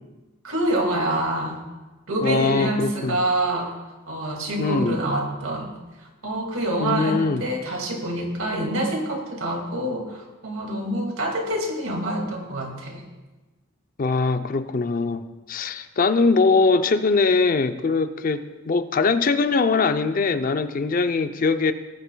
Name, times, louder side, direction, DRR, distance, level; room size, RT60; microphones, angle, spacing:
voice 1, 0.4-1.6 2.1-3.7 4.1-13.0, right 1 dB, 75° right, 1 dB, 2.2 m, -26 dB
voice 2, 2.2-3.2 4.6-5.0 6.8-7.5 14.0-21.7, left 4 dB, 40° left, 10 dB, 0.5 m, -22 dB
19.0 x 10.0 x 2.2 m, 1.2 s
head